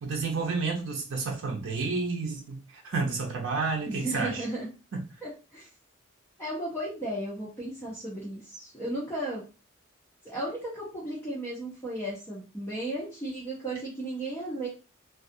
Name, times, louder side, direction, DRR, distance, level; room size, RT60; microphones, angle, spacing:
voice 1, 0.0-4.4 4.9-5.0, right 4 dB, 75° right, 0.6 m, -30 dB
voice 2, 3.9-4.7 5.2-5.7 6.4-9.4 10.2-14.7, right 1 dB, 10° left, 0.7 m, -35 dB
2.3 x 2.3 x 2.6 m
head